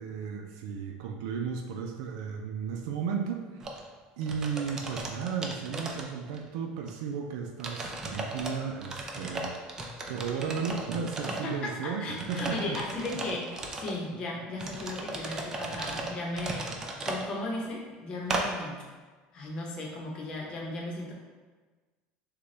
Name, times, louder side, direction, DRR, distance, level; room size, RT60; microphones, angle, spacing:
voice 1, 0.0-3.6 4.2-12.8, right 6 dB, 85° right, 2 dB, 0.4 m, -34 dB
sound 1, 3.6-3.8 4.2-6.5 6.9-7.0 7.6-8.5 8.8-11.6 12.1-14.0 14.6-17.3 18.3-18.5, right 2 dB, 20° right, 0.4 m, -36 dB
voice 2, 11.3-16.7 17.1-18.8 19.3-21.1, left 2 dB, 30° left, -2 dB, 0.9 m, -36 dB
6.5 x 2.3 x 3.2 m, 1.4 s
cardioid pair, 170°, 3 cm